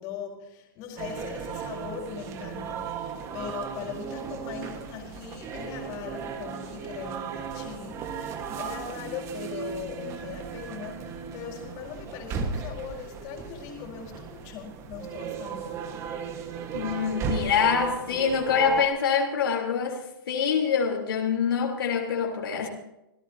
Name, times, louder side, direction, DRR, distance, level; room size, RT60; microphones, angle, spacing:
voice 1, 0.0-15.7, left 7 dB, 35° left, 0 dB, 4.3 m, -40 dB
sound 1, 1.0-18.9, right 6 dB, 25° right, 1.5 m, -36 dB
voice 2, 16.7-22.7, left 6 dB, 75° left, -1 dB, 3.5 m, -25 dB
26.5 x 15.5 x 2.8 m, 0.89 s
hypercardioid pair, 155°, 12 cm